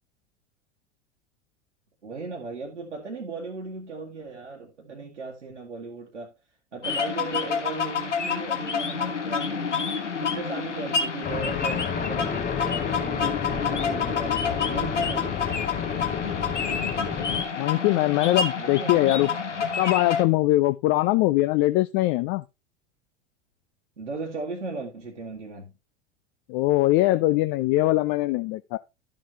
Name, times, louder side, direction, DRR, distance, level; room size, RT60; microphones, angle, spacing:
voice 1, 2.0-6.3 6.7-9.9 10.2-14.4 14.7-15.3 18.6-19.7 24.0-25.7, right 3 dB, 85° right, 1.9 m, -37 dB
sound 1, 6.8-20.2, left 6 dB, 85° left, 1.4 m, -28 dB
sound 2, 11.2-17.4, left 7 dB, 25° left, 1.1 m, -31 dB
voice 2, 17.6-19.3 19.8-22.4 26.5-28.8, left 17 dB, 40° left, 0.5 m, -22 dB
12.0 x 7.4 x 2.9 m
figure-of-eight pair, 80°, 35 cm